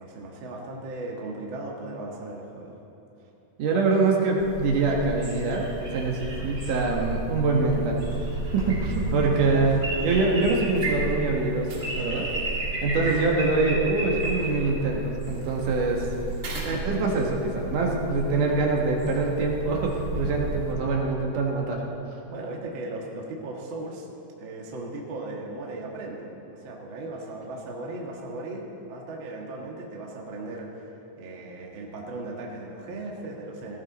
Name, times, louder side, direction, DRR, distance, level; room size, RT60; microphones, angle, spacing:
voice 1, 0.0-2.8 9.3-9.7 13.1-13.3 16.6-16.9 22.3-24.1 24.4-26.3 26.6-33.8, right 2 dB, 80° right, -2 dB, 1.1 m, -37 dB
voice 2, 3.6-5.7 5.9-8.0 8.5-12.3 12.8-16.1 16.6-21.8, right 3 dB, 60° right, -1 dB, 2.4 m, -24 dB
sound 1, 4.4-20.7, right 1 dB, 20° right, 2.2 m, -33 dB
sound 2, 10.0-17.5, right 2 dB, 45° right, 1.8 m, -45 dB
18.5 x 14.5 x 4.1 m, 2.9 s
omnidirectional pair, 5.1 m